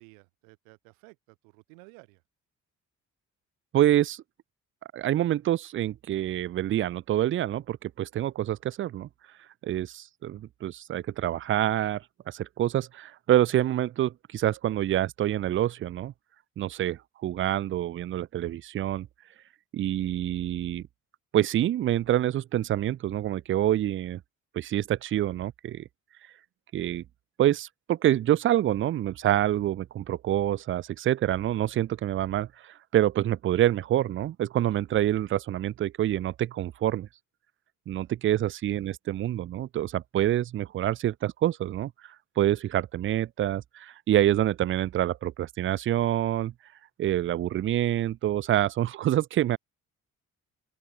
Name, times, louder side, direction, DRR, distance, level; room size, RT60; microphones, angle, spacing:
voice 1, 0.0-2.2 37.9-38.1, right 40 dB or more, 75° right, 2.0 m, -54 dB
voice 2, 3.7-4.2 4.9-9.1 9.6-16.1 16.6-19.1 19.7-20.8 21.3-24.2 24.5-25.8 26.7-27.0 27.4-37.1 37.9-46.5 47.0-49.6, right 12 dB, 30° right, 0.4 m, -27 dB
open air
figure-of-eight pair, 40°, 42 cm